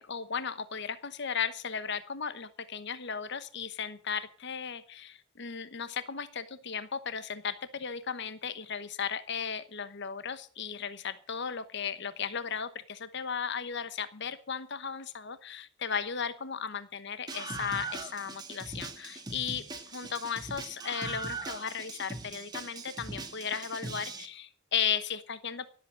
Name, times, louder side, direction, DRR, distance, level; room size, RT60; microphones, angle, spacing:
voice 1, 0.0-25.7, left 7 dB, 55° left, 13 dB, 1.0 m, -36 dB
Screaming, 17.3-24.3, right 3 dB, 20° right, 1.7 m, -40 dB
17.5 x 8.1 x 7.5 m, 0.42 s
head